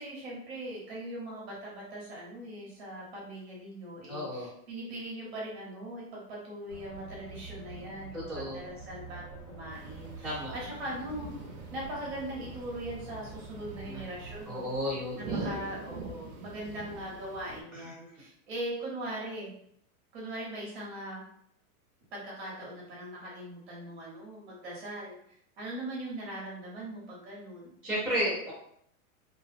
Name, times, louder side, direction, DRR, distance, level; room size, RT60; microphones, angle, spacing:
voice 1, 0.0-11.3 11.7-14.7 15.2-19.5 20.1-21.2 22.1-25.2 25.6-27.8, right 1 dB, 45° right, -4 dB, 0.9 m, -40 dB
voice 2, 4.1-4.5 8.1-8.6 10.2-10.5 13.9-14.0 14.5-15.5 17.7-17.9 27.8-28.5, equal, 5° left, -20 dB, 0.5 m, -33 dB
sound 1, 6.7-14.4, right 4 dB, 65° left, 0.9 m, -47 dB
sound 2, 9.7-17.6, right 2 dB, 70° right, 0.6 m, -44 dB
2.5 x 2.0 x 2.4 m, 0.70 s
supercardioid pair, 175°, 44 cm